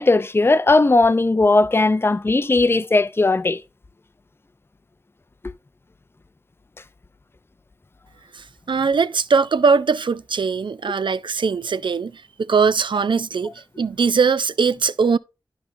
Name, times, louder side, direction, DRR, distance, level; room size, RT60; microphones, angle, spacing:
voice 1, 0.0-3.6, left 2 dB, 30° left, 0.5 m, -17 dB
voice 2, 8.7-12.1 12.5-13.5 13.8-15.2, right 5 dB, 80° right, 0.4 m, -20 dB
9.9 x 6.3 x 2.6 m
wide cardioid pair, 60°, 8 cm